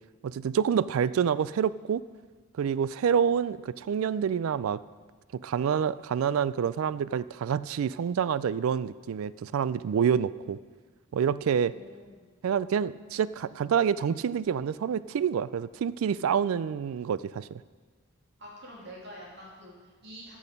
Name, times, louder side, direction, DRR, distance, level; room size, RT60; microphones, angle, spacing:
voice 1, 0.2-2.0 2.6-4.8 5.4-10.6 11.1-11.7 12.4-17.6, right 7 dB, 90° right, 18 dB, 0.3 m, -27 dB
voice 2, 11.7-12.2 18.4-20.4, equal, 55° right, -4 dB, 3.0 m, -47 dB
14.0 x 6.3 x 5.3 m, 1.4 s
head